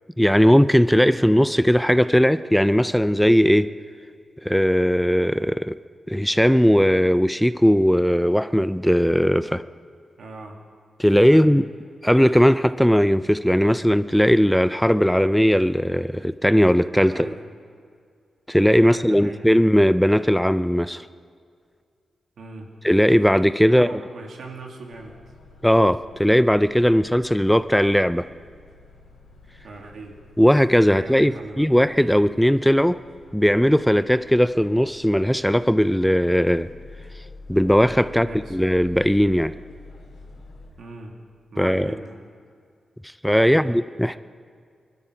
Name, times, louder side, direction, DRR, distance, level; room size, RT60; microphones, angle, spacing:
voice 1, 0.2-3.7 4.4-5.7 6.1-9.6 11.0-11.7 12.0-17.3 18.5-21.1 22.8-23.9 25.6-28.3 30.4-33.0 33.3-36.7 37.5-39.5 41.6-42.0 43.0-44.2, equal, 5° left, 14 dB, 0.3 m, -18 dB
voice 2, 10.2-10.6 11.3-11.5 17.1-17.4 18.8-19.5 22.4-22.7 23.7-25.1 29.6-30.2 30.8-31.7 38.1-38.6 40.8-41.1 41.5-42.2 43.5-43.7, right 3 dB, 80° right, 1 dB, 2.1 m, -39 dB
sound 1, 24.9-40.7, left 3 dB, 85° left, 2.4 m, -47 dB
21.0 x 12.5 x 5.0 m, 2.2 s
cardioid pair, 75°, 0 cm